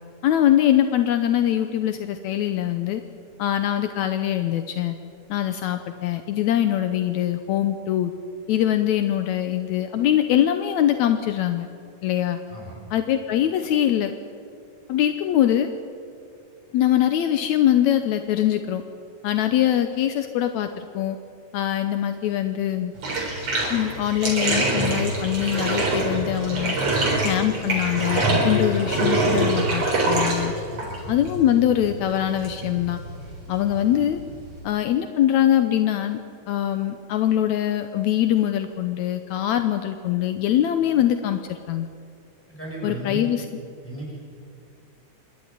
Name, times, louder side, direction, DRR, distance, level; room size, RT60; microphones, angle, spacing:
voice 1, 0.2-3.0 3.4-5.0 5.3-8.1 8.5-11.7 12.0-12.4 12.9-14.1 14.9-15.7 16.7-18.8 19.2-21.2 21.5-22.9 23.7-26.8 27.2-30.5 31.1-33.0 33.5-34.2 34.6-36.2 36.5-41.9 42.8-43.5, left 11 dB, 75° left, 8 dB, 2.1 m, -23 dB
voice 2, 12.5-12.8 30.7-31.1 42.5-43.2 43.8-44.2, right 1 dB, 5° left, -5 dB, 7.7 m, -35 dB
Bathtub (filling or washing), 23.0-34.6, right 2 dB, 55° right, 5.2 m, -25 dB
26.5 x 12.0 x 9.7 m, 2.3 s
omnidirectional pair, 3.3 m